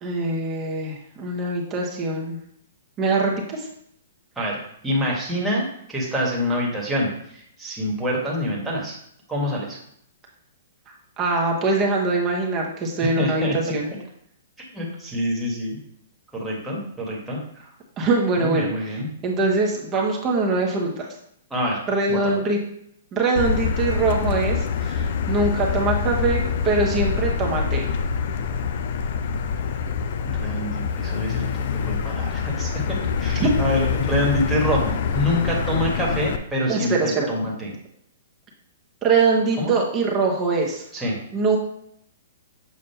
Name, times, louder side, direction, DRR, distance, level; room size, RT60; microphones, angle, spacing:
voice 1, 0.0-2.4 3.0-3.7 11.2-13.9 18.0-21.1 21.9-22.6 23.1-27.8 33.4-33.5 36.7-37.3 39.0-40.8 41.3-41.6, right 3 dB, 25° right, -1 dB, 1.1 m, -23 dB
voice 2, 4.4-9.0 9.3-9.8 13.0-13.6 14.7-15.8 16.3-17.7 18.4-19.1 21.5-21.8 22.1-22.4 30.3-32.8 33.2-37.7 39.6-39.8 40.9-41.2, equal, 5° right, -5 dB, 1.5 m, -26 dB
Motor vehicle (road), 23.4-36.4, left 6 dB, 55° left, 0.5 m, -25 dB
7.2 x 2.5 x 5.6 m, 0.71 s
hypercardioid pair, 155°, 0 cm